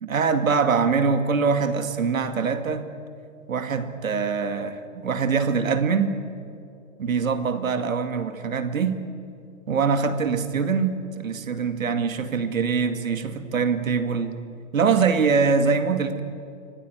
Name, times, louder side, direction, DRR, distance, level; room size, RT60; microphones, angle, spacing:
voice 1, 0.0-2.9 3.5-6.2 7.0-9.0 9.7-14.4 14.7-16.2, right 5 dB, 75° right, 8 dB, 2.3 m, -23 dB
25.5 x 18.0 x 9.5 m, 2.5 s
hypercardioid pair, 135°, 40 cm